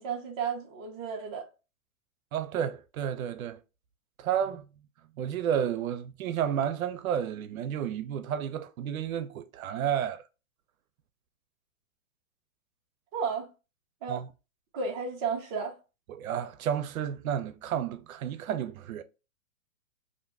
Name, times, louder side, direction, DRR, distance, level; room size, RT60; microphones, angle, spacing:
voice 1, 0.0-1.5 13.1-13.5 14.0-14.2 14.7-15.8, right 5 dB, 20° right, 0.4 m, -33 dB
voice 2, 2.3-3.6 4.2-4.7 5.2-10.2 14.1-14.3 16.1-19.0, right 9 dB, 80° right, 0.5 m, -31 dB
2.5 x 2.2 x 3.4 m
hypercardioid pair, 140°, 41 cm